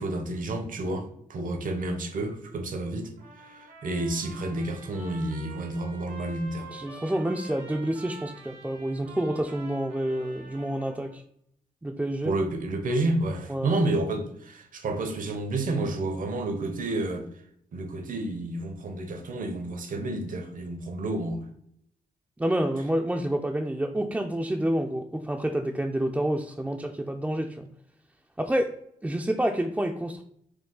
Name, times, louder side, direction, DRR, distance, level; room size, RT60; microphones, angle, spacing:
voice 1, 0.0-3.1 3.4-6.7 12.2-17.3 17.7-21.4, right 2 dB, 65° right, 0.8 m, -30 dB
Trumpet, 3.2-11.2, right 3 dB, 90° right, 1.1 m, -47 dB
voice 2, 6.7-11.2 11.8-12.4 13.5-13.8 22.4-27.7 28.4-28.7 29.0-30.2, right 1 dB, 10° right, 0.4 m, -28 dB
4.6 x 2.3 x 3.8 m
cardioid pair, 65°, 15 cm